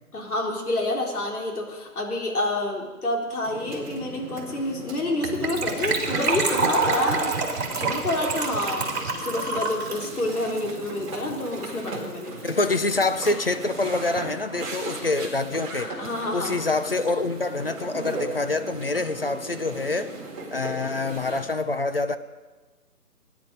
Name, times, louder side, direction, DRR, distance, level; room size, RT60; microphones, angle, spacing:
voice 1, 0.1-7.4 7.7-8.8 9.2-12.3 16.0-16.5, left 2 dB, 70° left, 0 dB, 3.7 m, -28 dB
sound 1, 3.4-21.4, right 2 dB, 25° right, 2.4 m, -37 dB
Gurgling / Trickle dribble / Fill (with liquid), 5.2-11.5 11.7-11.8 12.0-12.2 12.5-12.6, right 4 dB, 45° right, 2.6 m, -27 dB
voice 2, 12.4-15.9 16.3-20.1 20.5-22.2, left 3 dB, 40° left, 11 dB, 0.5 m, -26 dB
18.0 x 10.5 x 5.2 m, 1.3 s
hypercardioid pair, 165°, 46 cm